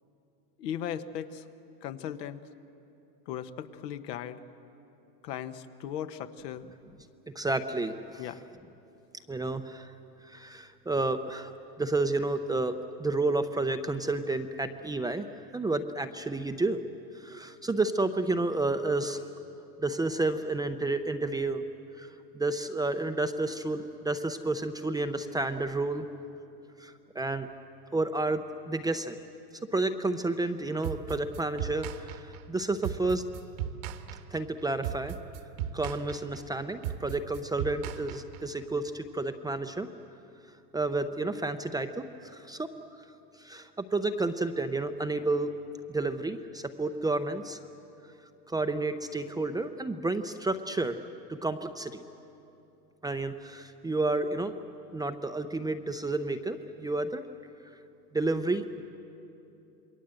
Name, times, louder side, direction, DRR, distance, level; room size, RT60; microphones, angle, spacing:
voice 1, 0.6-1.4 1.8-2.4 3.3-4.4 5.2-6.6 8.2-8.4, left 9 dB, 75° left, 9 dB, 1.3 m, -37 dB
voice 2, 7.4-8.2 9.3-9.9 10.3-12.7 13.0-15.2 15.5-16.8 17.1-19.2 19.8-21.6 22.0-22.1 22.3-26.1 26.8-27.5 27.9-29.2 29.7-32.2 32.5-33.2 34.3-35.1 35.7-39.9 40.7-42.7 43.4-45.5 45.9-47.6 48.5-51.0 51.3-52.0 53.0-54.5 54.9-57.2 58.1-58.8, right 2 dB, 10° right, 7 dB, 0.6 m, -30 dB
sound 1, 30.8-38.6, right 9 dB, 60° right, 1.5 m, -37 dB
28.0 x 21.5 x 7.8 m, 2.8 s
supercardioid pair, 120°, 49 cm